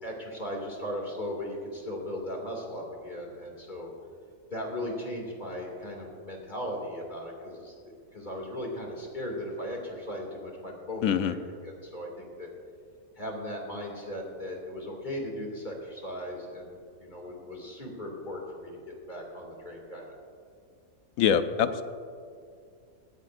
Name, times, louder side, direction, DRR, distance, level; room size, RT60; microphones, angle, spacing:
voice 1, 0.0-3.9 4.5-11.4 11.6-12.5 13.2-20.1, left 1 dB, 30° left, -1 dB, 2.5 m, -37 dB
voice 2, 11.0-11.3 21.2-21.8, left 8 dB, 75° left, 10 dB, 1.1 m, -24 dB
18.0 x 15.0 x 2.5 m, 2.3 s
omnidirectional pair, 1.5 m